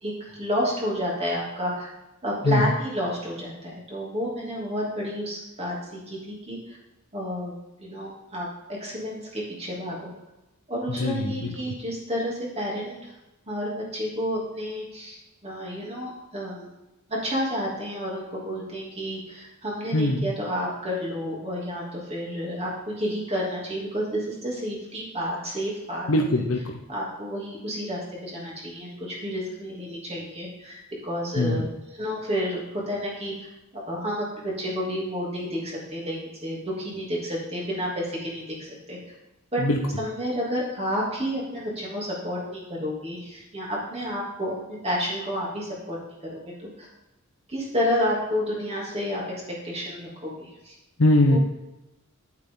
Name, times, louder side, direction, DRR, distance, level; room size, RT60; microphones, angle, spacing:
voice 1, 0.0-1.9 2.2-6.8 7.1-10.1 10.7-13.1 13.5-16.7 17.1-26.1 26.9-31.7 31.9-33.3 33.7-39.0 39.5-39.6 40.0-46.0 46.2-46.9 47.5-49.2 49.6-50.7 51.3-51.4, equal, 30° right, -5 dB, 3.1 m, -30 dB
voice 2, 11.0-11.7 19.9-20.3 26.1-26.6 31.4-31.6 39.6-39.8 51.0-51.4, left 1 dB, 70° left, 2 dB, 0.9 m, -22 dB
9.4 x 8.8 x 3.9 m, 0.97 s
head